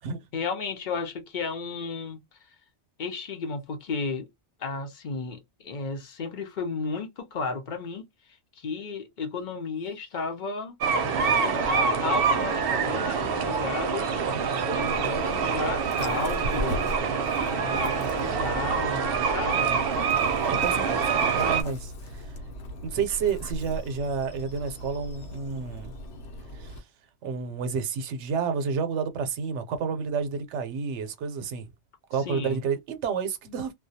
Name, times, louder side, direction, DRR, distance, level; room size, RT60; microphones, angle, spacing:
voice 1, 0.3-2.2 3.0-4.3 4.6-8.1 8.6-10.8 11.2-14.1 14.7-17.1 17.4-19.8 32.2-32.6, left 4 dB, 50° left, 0.7 m, -33 dB
sound 1, 10.8-21.6, right 5 dB, 65° right, 0.7 m, -26 dB
Dog, 14.7-26.8, equal, 80° left, 1.0 m, -39 dB
voice 2, 20.4-22.4 22.8-25.9 26.5-26.8 27.2-31.7 32.1-33.7, right 6 dB, 90° right, 0.9 m, -30 dB
2.2 x 2.2 x 2.6 m
omnidirectional pair, 1.2 m